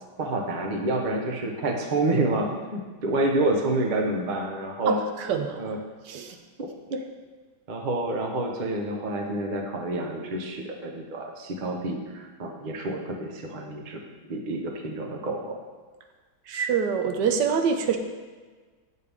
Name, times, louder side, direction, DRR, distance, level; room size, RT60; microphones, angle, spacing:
voice 1, 0.2-5.0 5.6-5.8 6.6-7.0 7.7-14.0 14.3-15.6, right 2 dB, 40° right, 2 dB, 0.7 m, -28 dB
voice 2, 4.9-5.7 6.0-6.4 16.5-18.0, right 6 dB, 75° right, 6 dB, 1.2 m, -26 dB
8.4 x 6.6 x 3.5 m, 1.4 s
omnidirectional pair, 2.0 m